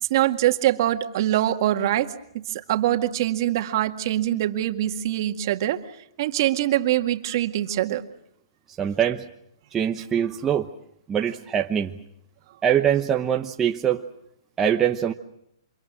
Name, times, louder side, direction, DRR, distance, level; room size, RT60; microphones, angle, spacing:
voice 1, 0.1-2.1 2.5-5.8 6.2-8.0, right 13 dB, 45° right, 2.0 m, -23 dB
voice 2, 8.8-9.2 9.7-10.7 11.1-11.9 12.6-14.0 14.6-15.1, right 9 dB, 15° right, 1.0 m, -23 dB
29.5 x 27.0 x 6.2 m
hypercardioid pair, 155°, 3 cm